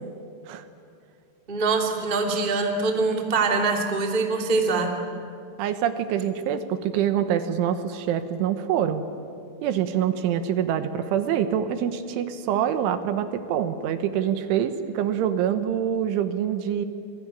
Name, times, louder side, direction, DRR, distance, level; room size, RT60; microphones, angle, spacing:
voice 1, 1.5-4.9, right 3 dB, 20° right, 2 dB, 1.3 m, -23 dB
voice 2, 5.6-9.0 9.6-16.9, right 9 dB, 75° right, 10 dB, 3.5 m, -25 dB
27.0 x 22.5 x 9.9 m, 2.5 s
omnidirectional pair, 5.8 m